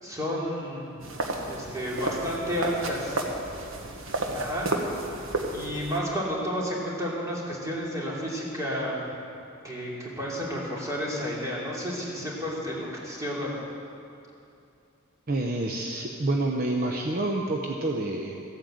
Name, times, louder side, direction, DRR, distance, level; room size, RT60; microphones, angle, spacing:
voice 1, 0.0-1.0 1.4-3.2 4.3-4.7 5.5-9.0 9.6-13.6, equal, 15° right, -5 dB, 2.9 m, -31 dB
sound 1, 1.0-6.0, right 2 dB, 80° right, 1.4 m, -32 dB
voice 2, 15.3-18.4, right 2 dB, 50° right, 1 dB, 0.8 m, -28 dB
14.5 x 8.9 x 7.8 m, 2.6 s
head